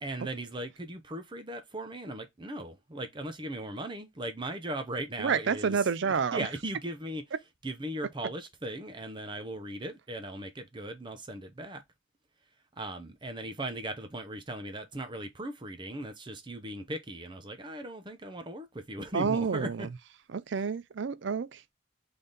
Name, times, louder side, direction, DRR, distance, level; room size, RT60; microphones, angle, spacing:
voice 1, 0.0-7.2 7.6-11.8 12.8-19.9, right 1 dB, 25° right, 0.7 m, -38 dB
voice 2, 5.2-6.5 19.1-19.9 20.3-21.7, right 6 dB, 60° right, 0.4 m, -29 dB
3.8 x 3.5 x 3.9 m
head